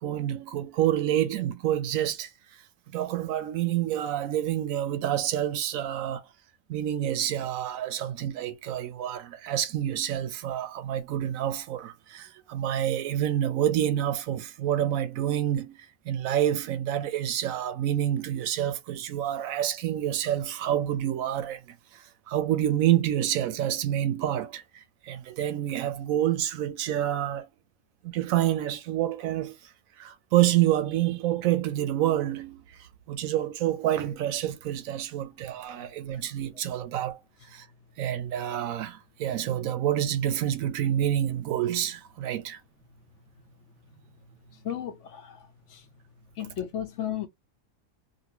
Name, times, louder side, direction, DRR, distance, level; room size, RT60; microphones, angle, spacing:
voice 1, 0.0-2.3 2.9-6.3 6.7-27.5 28.0-29.7 30.0-37.2 37.5-37.7 38.0-42.6, right 11 dB, 75° right, 0.9 m, -28 dB
voice 2, 35.8-36.2 44.5-45.9 46.4-47.3, left 10 dB, 65° left, 0.8 m, -35 dB
2.7 x 2.7 x 2.9 m
omnidirectional pair, 1.5 m